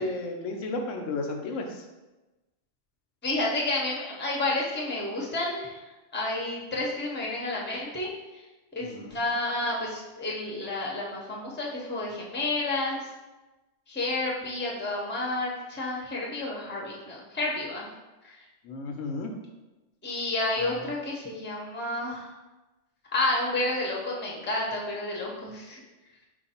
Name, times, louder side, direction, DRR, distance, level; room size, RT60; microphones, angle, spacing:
voice 1, 0.0-1.8 8.8-9.1 18.6-19.3 20.6-20.7, left 2 dB, 80° left, 3 dB, 1.0 m, -33 dB
voice 2, 3.2-5.8 6.1-8.4 8.8-13.1 13.9-17.9 18.2-18.4 20.0-22.3 23.1-25.8, left 2 dB, 10° left, -3 dB, 0.6 m, -30 dB
4.6 x 2.5 x 4.2 m, 1.1 s
omnidirectional pair, 1.3 m